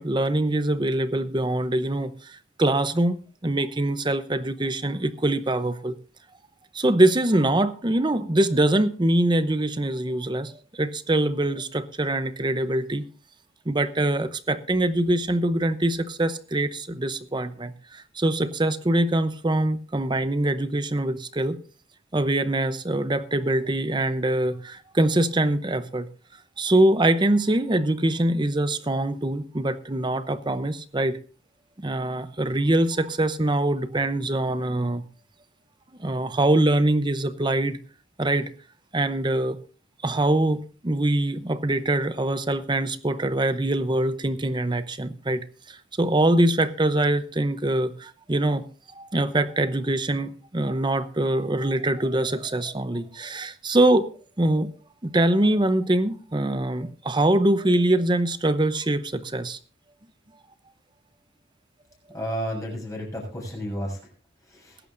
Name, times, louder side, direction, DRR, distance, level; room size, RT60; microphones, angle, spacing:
voice 1, 0.0-6.0 6.7-13.1 13.7-21.6 22.1-26.1 26.6-31.2 31.8-35.0 36.0-37.8 38.2-38.5 38.9-39.6 40.0-48.6 48.9-54.1 54.4-54.7 55.0-59.6, right 1 dB, 20° right, 0.7 m, -23 dB
voice 2, 62.1-64.0 64.5-64.8, equal, 15° left, 6.7 m, -32 dB
21.0 x 11.0 x 2.6 m
head